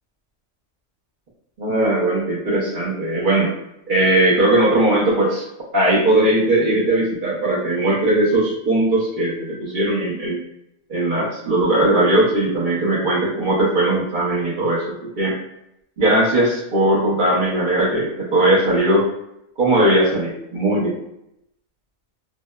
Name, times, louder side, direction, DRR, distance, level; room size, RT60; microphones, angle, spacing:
voice 1, 1.6-3.5 3.9-5.4 5.7-9.3 9.6-10.4 10.9-15.3 16.0-19.1 19.6-21.0, right 1 dB, 50° right, -6 dB, 0.6 m, -19 dB
2.7 x 2.0 x 2.2 m, 0.80 s
omnidirectional pair, 1.4 m